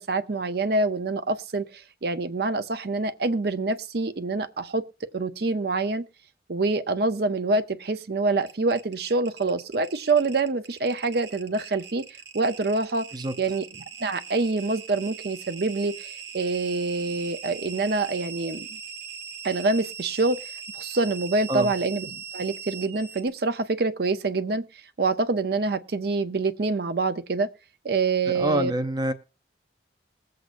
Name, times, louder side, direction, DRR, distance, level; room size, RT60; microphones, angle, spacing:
voice 1, 0.0-4.8 5.1-6.1 6.5-12.1 12.3-13.1 13.4-13.7 14.0-18.8 19.4-20.4 20.7-24.7 25.0-27.5 27.8-28.7, right 3 dB, 60° right, 0.7 m, -26 dB
sound 1, 8.4-23.3, right 7 dB, 80° right, 1.3 m, -40 dB
voice 2, 28.3-29.1, right 1 dB, 25° right, 0.6 m, -26 dB
21.0 x 7.7 x 2.6 m
head